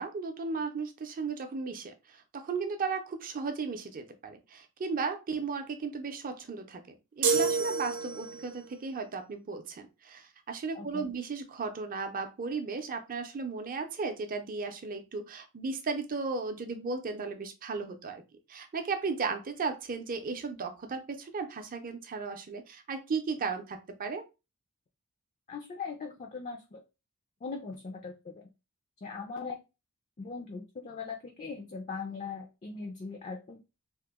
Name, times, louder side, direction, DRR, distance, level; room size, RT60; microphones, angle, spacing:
voice 1, 0.0-6.8 7.2-18.2 18.5-24.3, right 4 dB, 40° right, 7 dB, 0.5 m, -35 dB
sound 1, 7.2-8.6, right 5 dB, 80° right, 0.7 m, -28 dB
voice 2, 10.7-11.1 25.5-26.8 27.4-28.5 29.0-29.6 30.2-33.6, left 4 dB, 30° left, 2 dB, 0.4 m, -40 dB
2.9 x 2.0 x 3.5 m, 0.27 s
head